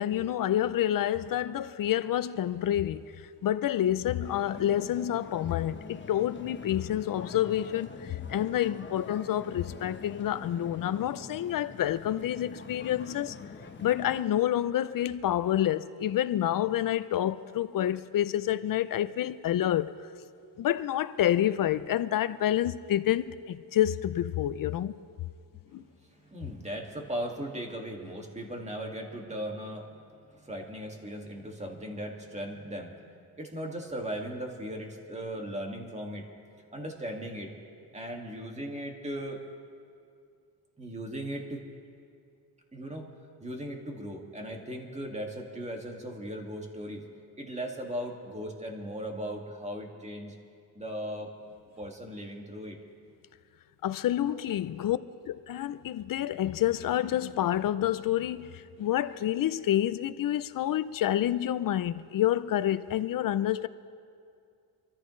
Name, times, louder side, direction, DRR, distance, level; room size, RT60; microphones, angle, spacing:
voice 1, 0.0-3.1 3.4-13.4 13.8-19.9 20.6-24.9 25.7-25.8 53.8-55.0 55.2-63.7, left 12 dB, 50° left, 0.6 m, -28 dB
sound 1, 4.2-14.2, left 5 dB, 25° left, 1.0 m, -45 dB
voice 2, 26.0-33.0 33.4-36.3 36.7-37.5 37.9-39.4 40.8-41.6 42.7-43.1 43.4-47.0 47.4-50.3 50.7-51.3 51.8-52.8 54.3-54.9, equal, 15° right, 2.1 m, -38 dB
25.5 x 13.5 x 3.2 m
cardioid pair, 105°, 45 cm